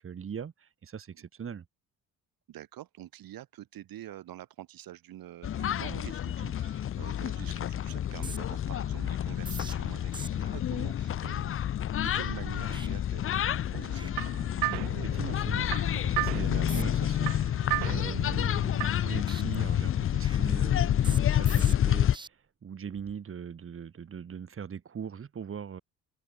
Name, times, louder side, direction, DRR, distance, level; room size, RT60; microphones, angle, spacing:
voice 1, 0.0-1.7 15.0-25.8, right 7 dB, 35° right, 1.2 m, -41 dB
voice 2, 2.5-14.5, right 13 dB, 60° right, 1.6 m, -46 dB
sound 1, 5.4-22.2, left 10 dB, 35° left, 0.5 m, -29 dB
sound 2, 8.1-13.6 13.9-14.1 14.4-15.3 15.7-16.0 16.5-17.1 17.5-19.0 19.3-22.3 22.8-23.2, right 4 dB, 10° right, 0.5 m, -48 dB
sound 3, 13.7-19.2, right 25 dB, 80° right, 0.9 m, -36 dB
open air
supercardioid pair, 65°, 39 cm